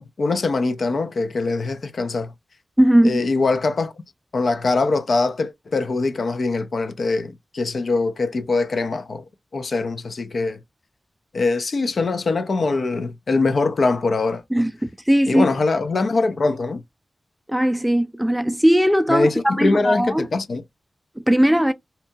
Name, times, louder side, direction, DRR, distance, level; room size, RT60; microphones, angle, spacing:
voice 1, 0.0-2.3 3.0-3.9 4.3-9.2 9.5-10.6 11.3-14.4 15.3-16.8 19.1-20.6, left 3 dB, 65° left, 0.4 m, -22 dB
voice 2, 2.8-3.2 14.5-14.7 15.1-15.5 17.5-20.3 21.3-21.7, equal, 5° right, 0.3 m, -18 dB
2.7 x 2.2 x 2.6 m
wide cardioid pair, 110°, 0 cm